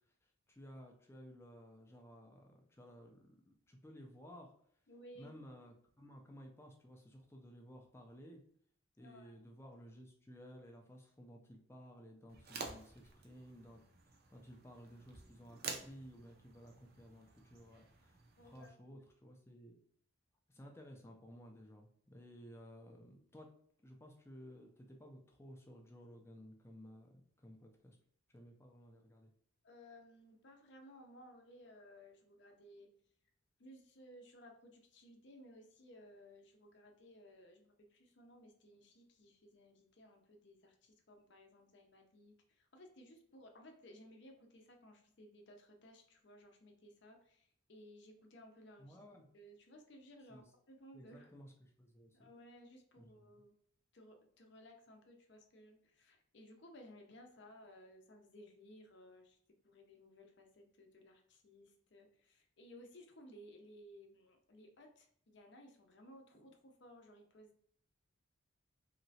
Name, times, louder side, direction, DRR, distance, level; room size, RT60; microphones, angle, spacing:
voice 1, 0.2-4.5 5.2-8.4 9.0-13.8 14.1-18.2 18.4-19.7 20.5-23.5 23.8-28.0 28.3-29.3 48.8-49.3 50.3-50.5 50.9-52.3 53.0-53.3, equal, 10° left, 2 dB, 0.4 m, -56 dB
voice 2, 4.9-5.3 9.0-9.4 18.4-19.0 29.6-32.9 33.6-51.3 52.1-53.5 53.9-59.4 59.6-67.6, equal, 55° left, 3 dB, 0.6 m, -59 dB
sound 1, 12.3-18.7, right 4 dB, 45° right, 0.5 m, -51 dB
3.1 x 2.8 x 2.7 m, 0.63 s
head